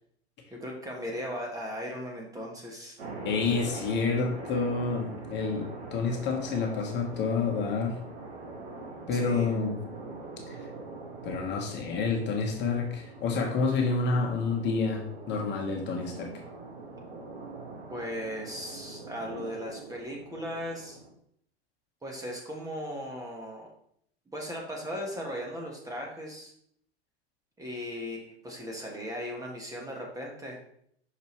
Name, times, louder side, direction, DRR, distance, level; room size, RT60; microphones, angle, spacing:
voice 1, 0.5-3.0 9.1-9.6 17.9-21.0 22.0-23.7 24.3-26.5 27.6-30.6, equal, 10° right, -1 dB, 1.3 m, -37 dB
sound 1, 3.0-21.1, right 3 dB, 75° right, 2.0 m, -43 dB
voice 2, 3.2-8.0 9.1-9.7 10.5-10.6 11.2-16.3, left 4 dB, 35° left, 1 dB, 1.3 m, -29 dB
5.9 x 5.3 x 3.2 m, 0.67 s
hypercardioid pair, 100°, 33 cm